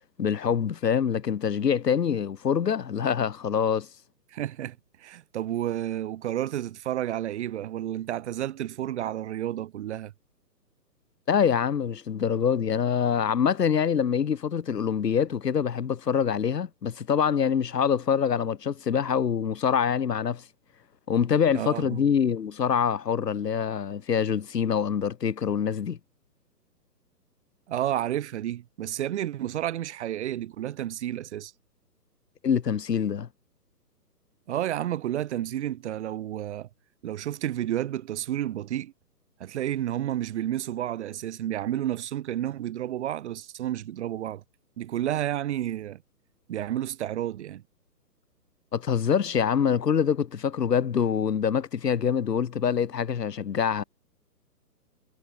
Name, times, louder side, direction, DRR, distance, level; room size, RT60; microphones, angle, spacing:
voice 1, 0.2-3.9 11.3-20.4 21.1-26.0 32.4-33.3 48.7-53.8, left 7 dB, 75° left, 1.7 m, -25 dB
voice 2, 4.3-10.1 21.5-22.0 27.7-31.5 34.5-36.7 37.0-38.9 39.4-44.4 44.8-46.0 46.5-47.6, right 12 dB, 45° right, 3.6 m, -31 dB
hypercardioid pair, 145°, 49 cm